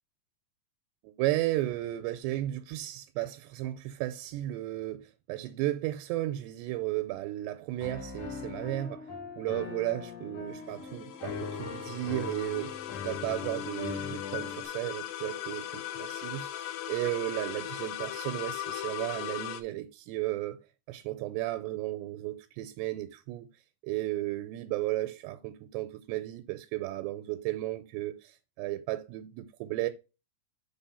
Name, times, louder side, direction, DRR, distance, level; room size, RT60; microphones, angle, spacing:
voice 1, 1.0-9.1 9.4-12.7 13.0-20.6 20.9-23.5 23.8-29.9, right 16 dB, 85° right, 2.6 m, -34 dB
Piano, 7.8-14.6, left 6 dB, 65° left, 1.7 m, -40 dB
sound 1, 10.5-19.6, left 12 dB, 85° left, 2.1 m, -39 dB
5.7 x 4.3 x 5.4 m
omnidirectional pair, 4.9 m